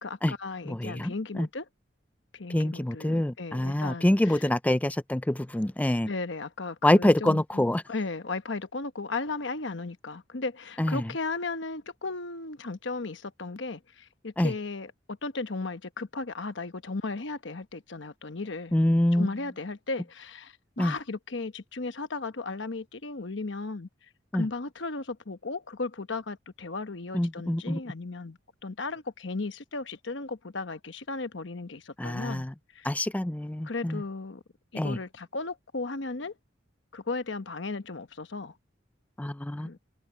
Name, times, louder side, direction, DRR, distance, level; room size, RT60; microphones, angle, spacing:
voice 1, 0.0-1.6 2.3-4.4 6.1-18.8 19.1-23.9 24.3-32.4 32.7-32.9 33.6-34.4 34.7-36.3 36.9-38.5 39.6-39.8, left 3 dB, 65° left, 1.1 m, -35 dB
voice 2, 0.7-1.5 2.5-6.1 6.8-7.8 10.8-11.1 14.4-14.5 18.7-19.3 20.8-20.9 24.3-24.5 27.1-27.8 32.0-32.5 32.8-34.0 34.7-35.0 39.2-39.7, left 1 dB, 10° left, 0.4 m, -26 dB
head